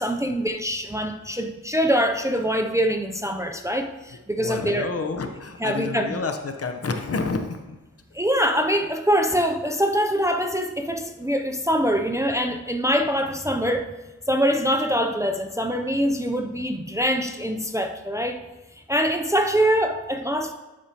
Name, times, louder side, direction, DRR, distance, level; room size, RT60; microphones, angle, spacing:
voice 1, 0.0-4.9 5.6-6.2 8.1-13.9 14.3-18.4 18.9-20.5, equal, 10° right, 4 dB, 0.5 m, -24 dB
voice 2, 4.4-7.8, left 4 dB, 50° left, 6 dB, 0.9 m, -29 dB
11.5 x 4.8 x 2.9 m, 1.2 s
cardioid pair, 60°, 31 cm